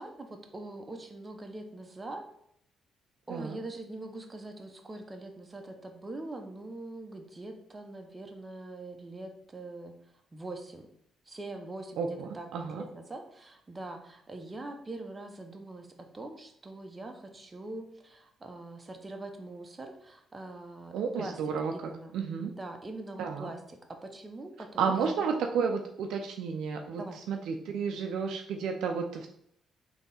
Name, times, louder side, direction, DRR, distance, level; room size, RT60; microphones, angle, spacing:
voice 1, 0.0-2.2 3.3-9.9 10.3-10.9 11.3-21.4 21.7-22.2 22.4-24.9 26.9-27.2, right 2 dB, 25° right, 4 dB, 0.7 m, -43 dB
voice 2, 12.0-12.8 20.9-21.7 22.1-22.5 23.2-23.5 24.8-27.0 27.3-29.3, right 6 dB, 80° right, 3 dB, 0.4 m, -31 dB
3.5 x 2.8 x 4.0 m, 0.71 s
cardioid pair, 90°, 0 cm